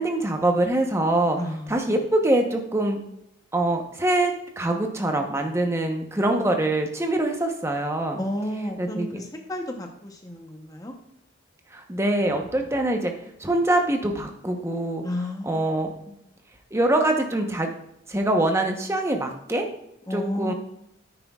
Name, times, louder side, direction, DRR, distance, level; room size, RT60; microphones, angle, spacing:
voice 1, 0.0-1.4 1.7-3.0 3.5-8.2 8.8-9.2 11.7-13.1 13.4-15.0 15.5-15.9 16.7-17.7 18.1-19.7 20.1-20.5, right 1 dB, 15° right, 3 dB, 0.9 m, -24 dB
voice 2, 1.4-2.0 8.2-10.9 15.0-15.8 20.1-20.5, left 1 dB, 20° left, 3 dB, 0.9 m, -32 dB
9.8 x 9.4 x 2.4 m, 0.79 s
head